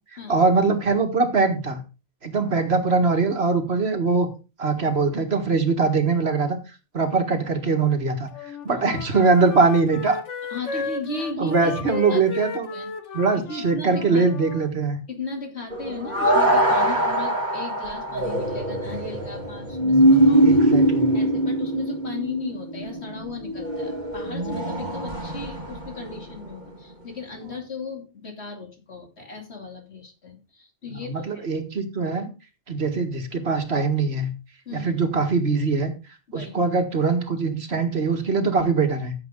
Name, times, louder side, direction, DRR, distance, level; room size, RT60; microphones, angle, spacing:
voice 1, 0.3-1.8 2.2-4.3 4.6-6.6 6.9-10.2 11.4-12.7 13.1-15.0 20.4-21.1 30.9-32.3 32.7-34.3 34.7-35.9 36.3-39.1, right 4 dB, 60° right, 6 dB, 2.0 m, -22 dB
Wind instrument woodwind instrument, 8.3-14.7, left 5 dB, 90° left, 1.5 m, -34 dB
voice 2, 10.5-12.9 13.5-14.3 15.1-20.6 21.1-31.5 34.6-34.9 36.3-36.6, left 3 dB, 65° left, 2 dB, 3.2 m, -36 dB
sound 1, 15.7-26.8 27.5-27.6, right 1 dB, 40° right, 2.0 m, -22 dB
14.0 x 7.7 x 3.7 m, 0.31 s
omnidirectional pair, 1.2 m